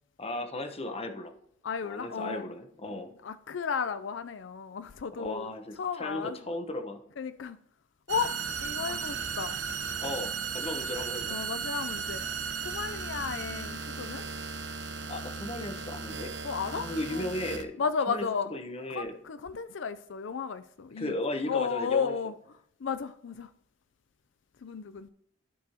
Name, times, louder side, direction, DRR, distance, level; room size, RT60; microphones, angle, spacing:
voice 1, 0.2-1.3 1.8-3.1 5.2-7.0 8.9-9.0 10.0-11.4 15.1-16.3 16.7-17.8 18.1-19.1 21.0-22.1, left 1 dB, 35° left, 1.0 m, -36 dB
voice 2, 1.6-2.5 2.9-3.0 3.2-5.5 5.8-6.4 7.2-7.6 8.1-8.3 8.6-9.6 11.3-12.3 12.6-14.3 16.4-17.3 17.8-18.5 18.9-21.2 21.5-22.3 22.8-23.5 24.6-25.1, left 6 dB, 85° left, 0.5 m, -33 dB
sound 1, 8.1-17.6, right 5 dB, 70° right, 0.9 m, -36 dB
14.0 x 4.8 x 2.9 m
head